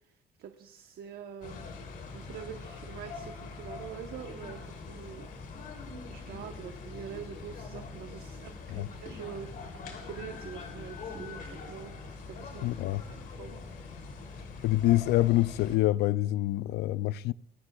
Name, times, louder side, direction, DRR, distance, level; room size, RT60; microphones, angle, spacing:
voice 1, 0.0-1.6 2.1-5.3 6.0-9.5 10.0-13.6, right 9 dB, 65° right, 1.1 m, -45 dB
sound 1, 1.4-15.8, left 4 dB, 60° left, 3.1 m, -43 dB
voice 2, 12.6-13.0 14.6-17.3, left 16 dB, 80° left, 0.4 m, -26 dB
25.5 x 15.0 x 2.4 m
cardioid pair, 110°, 17 cm